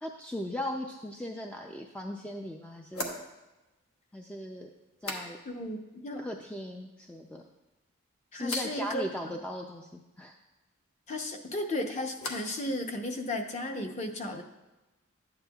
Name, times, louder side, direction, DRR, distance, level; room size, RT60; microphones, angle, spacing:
voice 1, 0.0-3.1 4.1-4.7 5.0-5.4 6.2-7.4 8.3-10.3, left 1 dB, 5° left, 2 dB, 0.3 m, -38 dB
sound 1, 1.7-1.8 2.9-5.8 6.0-6.6 7.0-7.6 8.4-8.8 11.2-12.6 12.9-13.5, left 2 dB, 75° left, 1.2 m, -43 dB
voice 2, 5.5-5.8 6.0-6.2 8.3-9.0 11.1-14.4, left 1 dB, 30° left, 4 dB, 0.7 m, -34 dB
12.0 x 8.8 x 2.3 m, 1.1 s
head